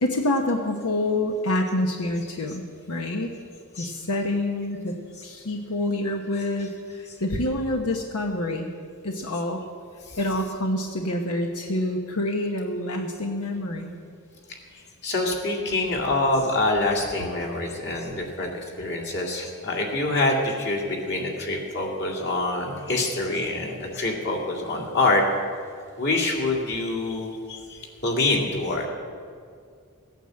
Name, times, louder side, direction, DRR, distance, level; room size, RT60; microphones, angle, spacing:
voice 1, 0.0-3.3 3.7-4.9 5.2-8.7 9.0-9.6 10.2-14.0, left 1 dB, 90° left, 3 dB, 1.1 m, -27 dB
voice 2, 10.1-10.4 15.0-18.5 18.8-25.2 26.0-28.9, left 2 dB, 55° left, 0 dB, 2.4 m, -26 dB
15.5 x 9.1 x 7.6 m, 2.2 s
head